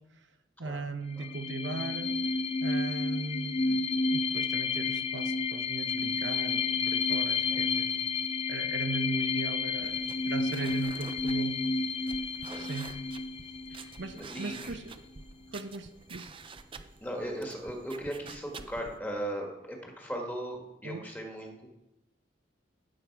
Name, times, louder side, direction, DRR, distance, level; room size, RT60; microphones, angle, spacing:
voice 1, 0.6-2.1 2.6-8.1 8.5-11.6 12.6-12.9 14.0-14.9 15.5-16.3 20.8-21.0, right 3 dB, 70° right, 7 dB, 0.9 m, -39 dB
sound 1, 1.1-14.5, left 4 dB, 35° left, 0.5 m, -31 dB
sound 2, 9.8-19.0, right 4 dB, 30° right, 0.6 m, -48 dB
voice 2, 13.7-14.8 17.0-21.7, right 1 dB, 10° left, 1 dB, 1.7 m, -38 dB
16.5 x 6.5 x 4.7 m, 0.94 s
head